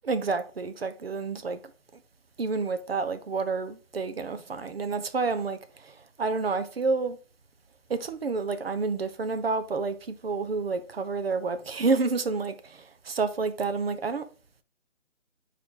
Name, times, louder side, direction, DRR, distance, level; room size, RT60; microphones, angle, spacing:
voice 1, 0.0-1.6 2.4-7.2 7.9-14.3, right 4 dB, 55° right, 0.9 m, -29 dB
4.5 x 4.3 x 4.8 m
figure-of-eight pair, 165°, 37 cm